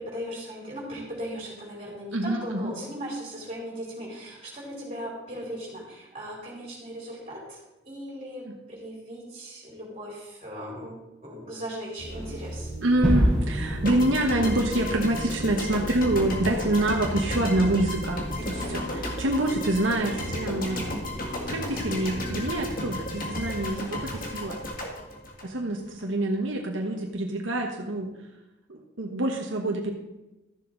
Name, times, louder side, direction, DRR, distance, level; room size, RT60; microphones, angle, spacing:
voice 1, 0.0-12.7 18.4-18.9, equal, 30° right, -4 dB, 4.2 m, -38 dB
voice 2, 2.1-2.7 8.4-8.5 12.8-18.8 19.2-21.0 21.5-24.6 25.4-28.1 28.7-29.9, right 1 dB, 90° right, 1 dB, 1.2 m, -26 dB
sound 1, 12.0-22.8, right 1 dB, 70° left, 3.9 m, -38 dB
Gunshot gunfire / Fireworks / Boom, 13.0-17.8, equal, 5° left, 3.6 m, -29 dB
sound 2, 13.8-26.0, left 1 dB, 45° left, 1.9 m, -34 dB
14.0 x 7.1 x 3.9 m, 1.0 s
head